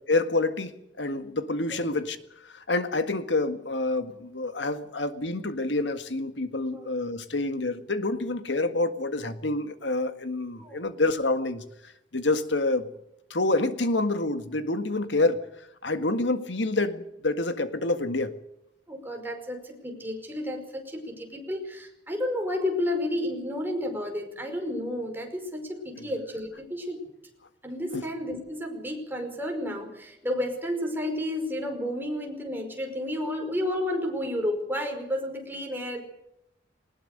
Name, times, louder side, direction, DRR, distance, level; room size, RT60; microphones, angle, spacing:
voice 1, 0.1-0.7 1.0-2.2 2.5-11.6 12.1-12.9 13.3-15.5 15.8-18.3 26.0-26.1 27.9-28.0, left 2 dB, 85° left, 1.8 m, -27 dB
voice 2, 18.9-27.0 27.6-36.0, left 1 dB, 10° right, 5.1 m, -31 dB
20.0 x 19.5 x 6.7 m
head